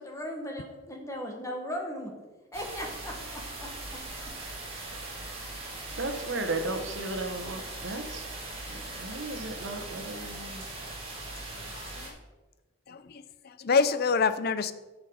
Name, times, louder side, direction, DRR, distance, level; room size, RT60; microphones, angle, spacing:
voice 1, 0.0-2.1 2.5-4.0, equal, 15° left, 1 dB, 1.6 m, -38 dB
sound 1, 2.5-12.1, right 2 dB, 30° right, 2.9 m, -40 dB
voice 2, 6.0-8.2 8.7-10.6, right 2 dB, 65° right, 6 dB, 1.2 m, -35 dB
voice 3, 11.5-12.2 12.9-14.7, left 5 dB, 50° left, 13 dB, 0.5 m, -28 dB
9.9 x 6.5 x 5.0 m, 1.2 s
head